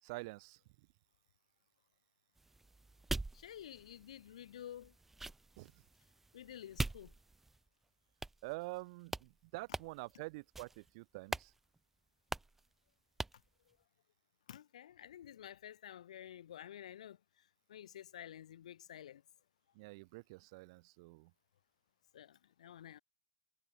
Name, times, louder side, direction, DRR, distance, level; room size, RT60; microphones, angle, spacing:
voice 1, 0.0-0.9 5.6-5.8 8.4-11.5 19.7-21.3, right 25 dB, 55° right, 2.8 m, -47 dB
sound 1, 2.4-7.7 8.2-8.8 9.1-9.3 9.7-10.1 10.5-10.9 11.3-11.5 11.8-11.9 12.3-12.6 13.2-13.5, right 2 dB, 5° right, 1.5 m, -43 dB
voice 2, 3.3-4.9 6.3-7.1 13.7-13.8 14.5-19.2 22.1-23.0, left 10 dB, 80° left, 1.7 m, -51 dB
hypercardioid pair, 130°, 4 cm